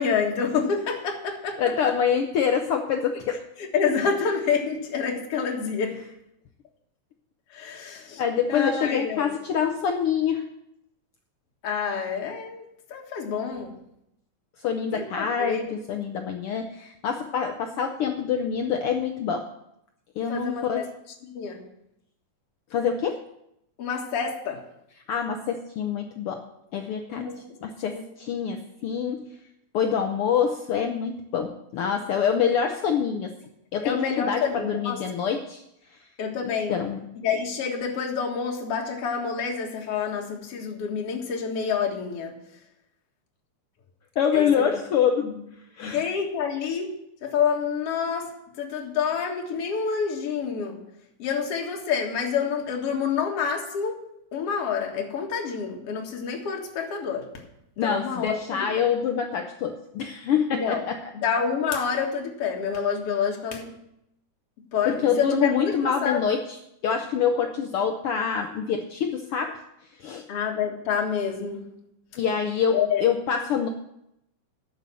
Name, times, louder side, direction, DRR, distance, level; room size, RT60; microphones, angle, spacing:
voice 1, 0.0-1.9 3.6-6.0 7.5-8.2 8.5-9.3 11.6-13.7 14.9-15.8 20.3-20.8 21.3-21.6 23.8-24.6 27.1-27.4 27.8-28.0 33.8-35.0 36.2-36.8 37.2-42.3 44.3-44.7 45.2-45.4 45.8-46.9 47.2-50.8 51.2-54.0 54.3-57.3 57.8-58.8 60.5-60.8 61.1-63.7 64.7-66.2 70.3-71.7 72.7-73.0, left 6 dB, 55° left, 1 dB, 2.5 m, -28 dB
voice 2, 1.6-3.4 8.2-10.5 14.6-19.5 20.2-20.9 22.7-23.2 25.1-26.4 26.7-27.3 27.6-29.2 29.7-33.3 33.7-35.6 35.9-36.0 36.7-37.0 44.2-45.3 45.7-46.0 57.8-61.1 64.9-66.6 66.8-69.6 70.0-70.3 72.2-73.7, left 7 dB, 75° left, 5 dB, 1.3 m, -26 dB
11.0 x 7.0 x 7.5 m, 0.80 s
omnidirectional pair, 3.4 m